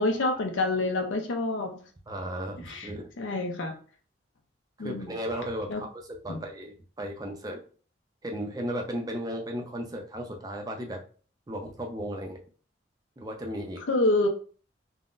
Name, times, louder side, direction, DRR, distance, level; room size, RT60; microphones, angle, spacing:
voice 1, 0.0-1.8 2.6-2.9 3.2-3.8 4.8-5.1 5.7-5.8 6.3-6.4 13.9-14.3, left 2 dB, 80° left, 3 dB, 0.5 m, -27 dB
voice 2, 2.1-3.1 4.8-7.6 8.2-11.0 11.5-12.4 13.2-13.8, equal, 20° right, 2 dB, 0.4 m, -35 dB
3.6 x 2.1 x 2.4 m, 0.41 s
head